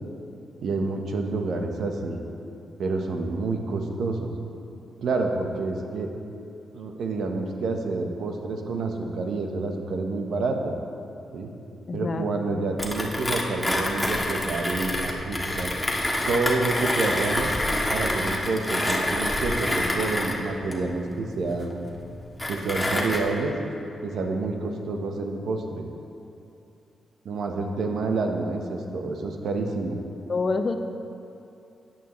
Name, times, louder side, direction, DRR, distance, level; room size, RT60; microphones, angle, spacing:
voice 1, 0.6-2.2 2.8-4.3 5.0-6.1 6.7-10.7 11.3-11.5 11.9-15.7 16.3-17.5 17.9-21.8 22.5-23.5 24.0-25.8 27.2-30.0, right 3 dB, 75° right, 3 dB, 1.0 m, -28 dB
voice 2, 11.9-12.3 30.3-30.8, left 3 dB, 45° left, 7 dB, 0.7 m, -26 dB
Mechanisms, 12.8-23.2, left 1 dB, 10° left, 1.5 m, -27 dB
13.0 x 9.0 x 3.1 m, 2.7 s
cardioid pair, 70°, 0 cm